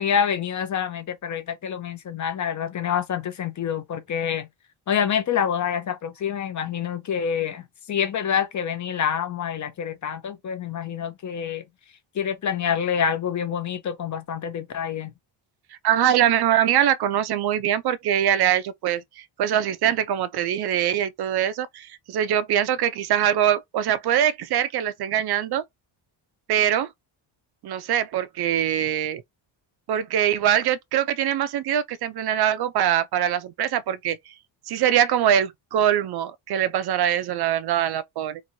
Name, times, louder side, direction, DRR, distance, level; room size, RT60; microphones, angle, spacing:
voice 1, 0.0-4.5 4.9-11.6 12.2-15.1, left 8 dB, 40° left, 0.5 m, -27 dB
voice 2, 15.8-25.6 26.5-26.9 27.6-29.2 29.9-34.2 34.7-38.4, right 10 dB, 55° right, 0.5 m, -23 dB
3.0 x 2.6 x 2.6 m
cardioid pair, 145°, 48 cm